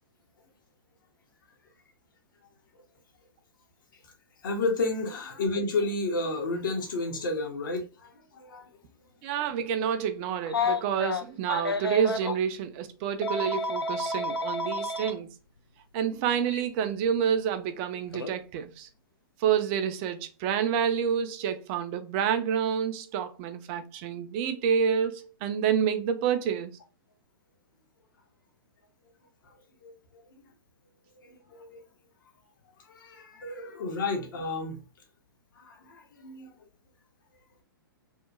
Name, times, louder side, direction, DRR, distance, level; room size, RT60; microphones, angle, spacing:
voice 1, 4.4-8.7 29.5-29.9 30.3-30.4 31.2-31.8 32.9-34.8 35.6-36.5, left 2 dB, 60° left, 0.7 m, -32 dB
voice 2, 9.2-15.3 15.9-18.9 19.4-26.8, right 8 dB, 30° right, 0.3 m, -28 dB
Telephone, 10.5-12.4 13.2-15.1 16.5-16.6 18.1-18.3, left 3 dB, 85° left, 0.4 m, -30 dB
2.8 x 2.1 x 2.3 m
figure-of-eight pair, 115°, 12 cm